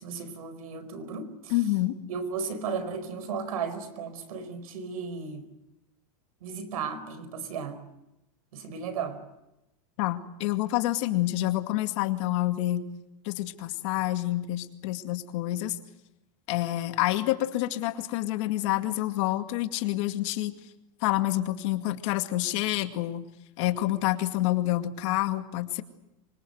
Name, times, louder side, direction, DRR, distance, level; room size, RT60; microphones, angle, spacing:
voice 1, 0.0-1.5 2.1-5.5 6.4-7.8 8.5-9.2, right 5 dB, 85° right, 13 dB, 4.7 m, -35 dB
voice 2, 1.5-2.0 10.0-12.9 13.2-15.8 16.5-20.5 21.0-23.3 23.6-25.8, left 16 dB, 55° left, 7 dB, 2.2 m, -28 dB
25.5 x 25.0 x 8.0 m, 0.92 s
supercardioid pair, 145°, 18 cm